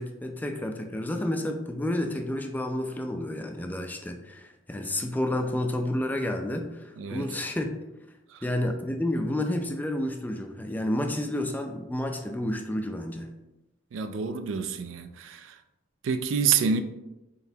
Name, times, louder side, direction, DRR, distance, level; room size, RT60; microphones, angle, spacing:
voice 1, 0.0-7.7 8.4-13.3, left 1 dB, 10° left, 0.3 m, -30 dB
voice 2, 7.0-7.3 8.3-8.4 13.9-15.6 16.0-16.8, right 6 dB, 80° right, 0.4 m, -28 dB
4.0 x 3.9 x 2.7 m
head